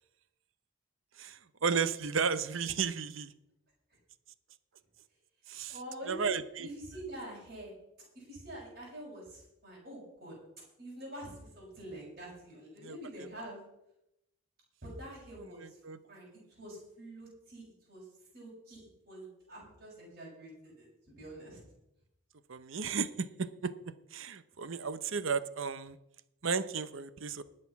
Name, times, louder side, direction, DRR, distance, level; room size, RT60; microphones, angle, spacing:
voice 1, 1.2-3.3 5.5-5.7 6.1-6.7 12.8-13.0 15.5-16.0 22.5-23.7 24.1-26.0 26.4-27.4, right 5 dB, 65° right, 14 dB, 0.8 m, -34 dB
voice 2, 5.7-6.3 6.6-7.7 8.1-10.4 10.8-13.6 14.8-15.8 16.0-18.1 18.3-21.6, right 1 dB, 45° right, -4 dB, 6.4 m, -46 dB
19.5 x 6.5 x 5.9 m, 0.84 s
head